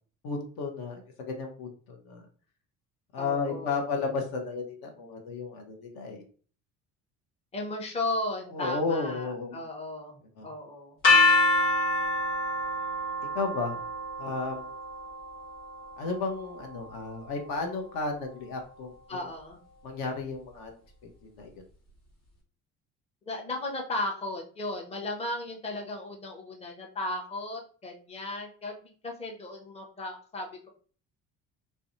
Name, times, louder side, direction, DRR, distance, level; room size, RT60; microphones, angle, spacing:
voice 1, 0.2-2.3 3.1-6.2 8.5-9.6 10.4-10.5 13.3-13.8 14.2-14.7 16.0-19.2 19.8-20.7 21.0-21.5, left 4 dB, 55° left, 2 dB, 0.7 m, -33 dB
voice 2, 3.2-3.7 7.5-11.0 19.1-19.6 23.3-28.7 29.0-30.7, left 2 dB, 15° left, 1 dB, 0.6 m, -35 dB
sound 1, 11.0-17.0, left 2 dB, 75° left, 1.2 m, -27 dB
2.5 x 2.1 x 2.5 m, 0.43 s
hypercardioid pair, 60°, 43 cm